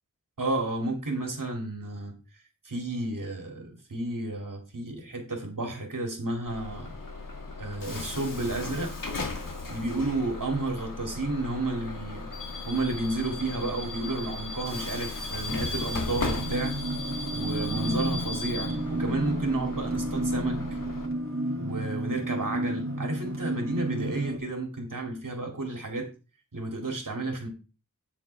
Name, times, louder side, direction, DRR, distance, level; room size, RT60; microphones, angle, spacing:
voice 1, 0.4-2.1 2.6-6.9 7.6-8.9 9.7-12.3 12.7-16.8 17.3-20.8 21.6-26.1 26.5-27.5, right 2 dB, 75° right, 2.8 m, -31 dB
Bus / Alarm, 6.5-21.1, left 3 dB, 80° left, 1.9 m, -36 dB
sound 1, 16.1-24.4, right 1 dB, 40° right, 2.7 m, -31 dB
9.1 x 8.0 x 3.4 m
wide cardioid pair, 55°, 32 cm